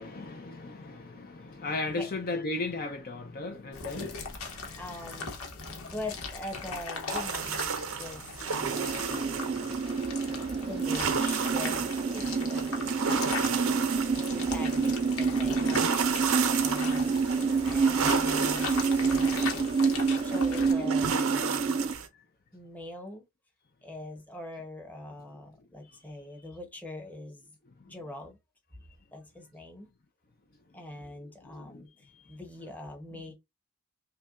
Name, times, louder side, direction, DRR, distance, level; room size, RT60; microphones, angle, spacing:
voice 1, 0.0-5.0 5.6-5.9 14.6-14.9 31.5-31.8 33.1-33.2, left 2 dB, 45° left, 0.6 m, -37 dB
sound 1, 3.7-20.7, left 4 dB, 85° left, 1.1 m, -39 dB
voice 2, 4.8-5.4 5.9-8.2 8.5-9.1 10.6-12.7 14.3-17.4 17.7-19.5 20.2-21.8 22.5-23.2 23.8-27.5 27.9-28.4 29.1-29.9 30.7-31.9 32.3-33.3, left 1 dB, 10° left, 0.9 m, -43 dB
sound 2, 7.1-22.1, right 6 dB, 80° right, 0.6 m, -33 dB
sound 3, 8.6-21.9, right 5 dB, 25° right, 0.3 m, -28 dB
5.6 x 2.2 x 2.4 m
head